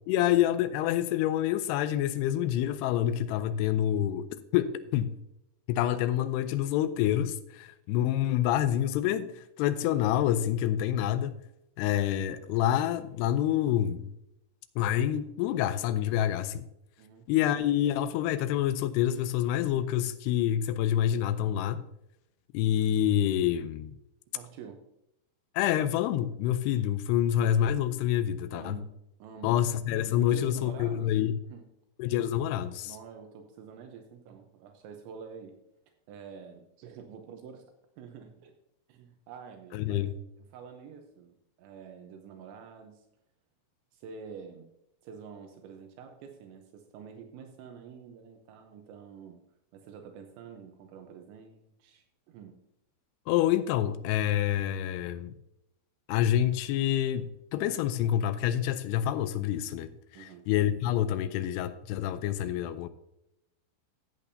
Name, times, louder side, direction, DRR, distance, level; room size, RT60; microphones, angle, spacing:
voice 1, 0.1-4.3 4.5-5.2 5.7-11.3 11.8-14.1 14.8-16.6 17.3-21.8 22.5-23.9 25.6-28.8 29.4-31.3 32.0-33.0 39.7-40.1 53.3-55.3 56.1-62.9, left 11 dB, 85° left, 2.3 m, -27 dB
voice 2, 17.0-17.3 24.3-24.8 28.5-28.9 29.2-29.6 30.2-31.2 31.5-31.7 32.8-35.6 36.1-37.7 38.0-38.5 38.9-40.0 40.4-43.1 43.9-44.7 45.0-49.4 49.7-52.6 60.1-60.4, right 6 dB, 80° right, 3.1 m, -47 dB
14.0 x 8.4 x 2.7 m
omnidirectional pair, 5.4 m